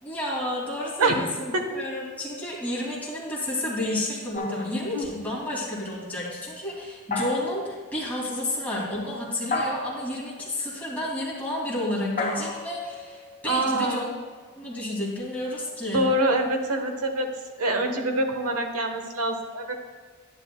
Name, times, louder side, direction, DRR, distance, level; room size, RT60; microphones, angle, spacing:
voice 1, 0.0-14.1 14.6-16.1, left 1 dB, 5° left, -6 dB, 2.6 m, -31 dB
sound 1, 4.3-5.4 7.1-7.7 9.5-10.2 12.2-13.9, left 2 dB, 40° left, 2.0 m, -32 dB
voice 2, 13.5-14.1 15.9-17.3 17.6-19.7, right 1 dB, 75° right, 4 dB, 1.1 m, -25 dB
11.0 x 11.0 x 2.3 m, 1.5 s
head